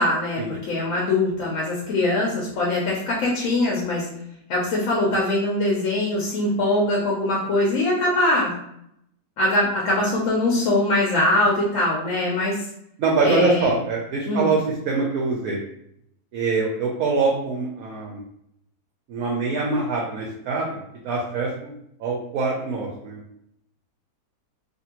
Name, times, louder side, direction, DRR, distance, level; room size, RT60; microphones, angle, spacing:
voice 1, 0.0-4.1 4.5-8.5 9.4-12.6 13.2-13.7 14.2-14.5, left 1 dB, 65° left, -4 dB, 0.9 m, -22 dB
voice 2, 13.0-14.6 14.9-15.6 16.3-18.2 19.1-20.8 21.0-21.7 22.0-23.2, right 4 dB, 70° right, -2 dB, 0.9 m, -24 dB
2.6 x 2.6 x 2.8 m, 0.76 s
omnidirectional pair, 1.8 m